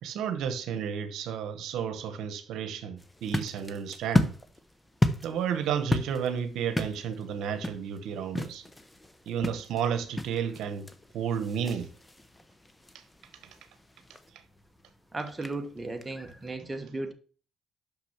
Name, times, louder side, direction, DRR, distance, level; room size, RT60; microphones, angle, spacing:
voice 1, 0.0-4.3 5.2-8.6 9.3-10.9 11.1-11.9, right 8 dB, 85° right, 0.9 m, -32 dB
sound 1, 3.0-16.5, left 1 dB, 15° left, 0.9 m, -34 dB
voice 2, 15.1-17.1, right 2 dB, 15° right, 1.3 m, -35 dB
6.1 x 5.9 x 5.8 m
cardioid pair, 90°, 0 cm